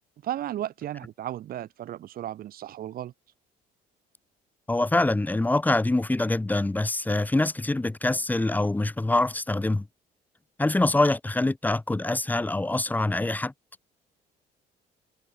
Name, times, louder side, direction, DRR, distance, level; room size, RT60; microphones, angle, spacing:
voice 1, 0.2-3.1, right 12 dB, 60° right, 1.5 m, -34 dB
voice 2, 4.7-9.9 10.6-13.5, left 2 dB, 10° left, 1.1 m, -25 dB
cardioid pair, 110°, 17 cm